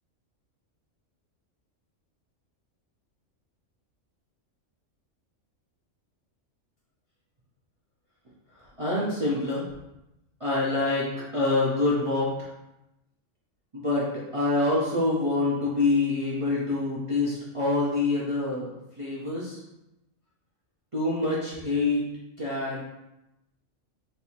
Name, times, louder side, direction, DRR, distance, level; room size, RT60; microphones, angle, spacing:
voice 1, 8.8-9.6 10.4-11.1 11.3-12.5 13.7-18.7 19.0-19.6 20.9-22.0 22.4-22.8, left 2 dB, 30° right, -7 dB, 0.6 m, -26 dB
3.3 x 2.7 x 4.3 m, 0.91 s
omnidirectional pair, 1.4 m